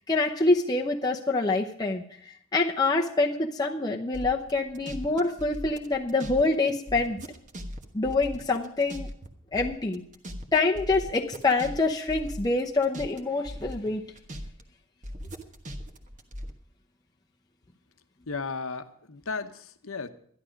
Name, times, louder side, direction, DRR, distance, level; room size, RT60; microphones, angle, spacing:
voice 1, 0.1-7.2 7.9-9.1 9.5-10.0 10.5-14.0, left 3 dB, 20° left, 0 dB, 0.7 m, -26 dB
sound 1, 4.1-6.4 6.7-9.3 9.5-13.2 13.4-14.6 15.0-16.5, equal, 35° right, 1.3 m, -39 dB
voice 2, 18.3-20.1, left 4 dB, 75° left, 10 dB, 1.0 m, -35 dB
12.0 x 11.5 x 5.1 m, 0.63 s
head